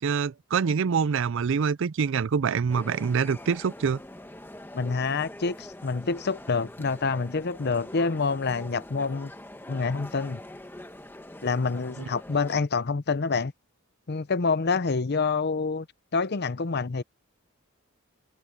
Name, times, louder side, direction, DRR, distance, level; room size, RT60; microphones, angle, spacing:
voice 1, 0.0-4.0 12.0-12.1, right 6 dB, 60° right, 0.4 m, -25 dB
sound 1, 2.7-12.6, left 1 dB, 10° left, 1.3 m, -44 dB
voice 2, 4.7-9.3 9.7-10.4 11.4-13.5 14.1-15.9 16.1-17.0, left 4 dB, 50° left, 0.7 m, -27 dB
head